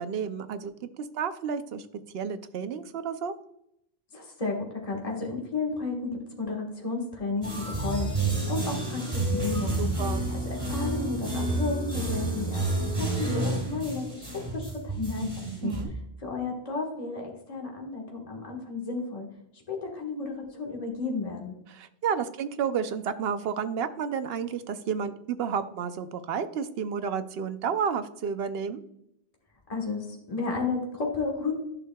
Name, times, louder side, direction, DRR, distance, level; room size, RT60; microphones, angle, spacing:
voice 1, 0.0-1.9 2.1-3.3 9.8-10.3 15.6-15.9 21.7-28.8, right 7 dB, 75° right, 11 dB, 0.8 m, -31 dB
voice 2, 4.1-9.9 10.4-15.7 16.2-19.3 19.5-21.6 29.7-31.5, left 3 dB, 35° left, -1 dB, 1.5 m, -33 dB
sound 1, 7.4-15.8, right 2 dB, 30° right, 1.7 m, -30 dB
11.0 x 6.4 x 2.2 m, 0.77 s
omnidirectional pair, 1.1 m